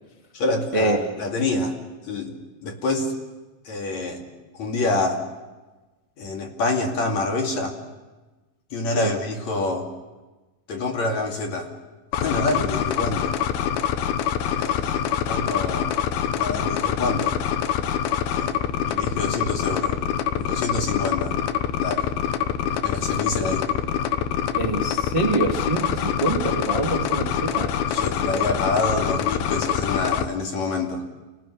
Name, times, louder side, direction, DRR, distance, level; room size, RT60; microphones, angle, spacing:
voice 1, 0.3-1.8 2.1-2.3 2.6-3.1 3.7-4.2 4.5-5.2 6.2-7.8 8.7-9.9 10.7-11.7 12.1-13.4 14.6-15.9 16.4-17.4 18.3-20.0 20.3-21.4 21.8-22.1 22.8-23.7 27.9-31.0, left 2 dB, 50° left, 2 dB, 3.5 m, -27 dB
sound 1, 12.1-30.3, left 9 dB, 85° left, 2.9 m, -25 dB
voice 2, 24.6-27.7, right 3 dB, 20° right, 2 dB, 0.8 m, -25 dB
28.0 x 19.5 x 8.4 m, 1.2 s
omnidirectional pair, 4.3 m